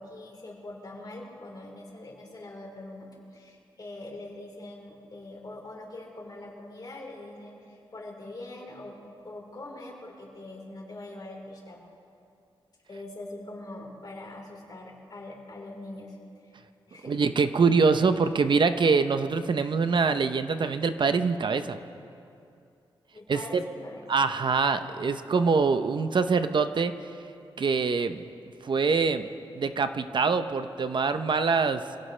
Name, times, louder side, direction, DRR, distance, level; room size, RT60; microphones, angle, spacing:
voice 1, 0.0-11.9 12.9-16.2 16.9-17.2 23.1-24.3, left 2 dB, 45° left, -2 dB, 4.2 m, -43 dB
voice 2, 17.0-21.8 23.3-23.6 24.1-26.9 27.6-28.2 28.6-29.3 29.5-31.8, right 4 dB, 55° right, 9 dB, 0.8 m, -24 dB
25.5 x 17.0 x 3.3 m, 2.5 s
wide cardioid pair, 85°, 9 cm